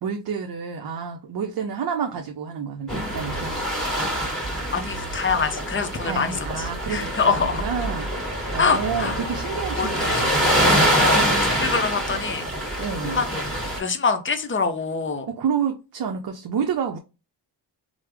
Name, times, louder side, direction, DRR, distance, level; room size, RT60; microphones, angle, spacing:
voice 1, 0.0-3.5 6.0-10.6 12.8-13.3 15.3-17.0, right 7 dB, 60° right, 0.6 m, -29 dB
sound 1, 2.9-13.8, equal, ahead, 1.4 m, -25 dB
voice 2, 4.7-7.6 8.6-9.2 9.8-10.3 10.9-12.9 13.1-13.4 13.8-15.3, left 5 dB, 30° left, 0.5 m, -25 dB
3.2 x 2.0 x 3.3 m
cardioid pair, 80°, 42 cm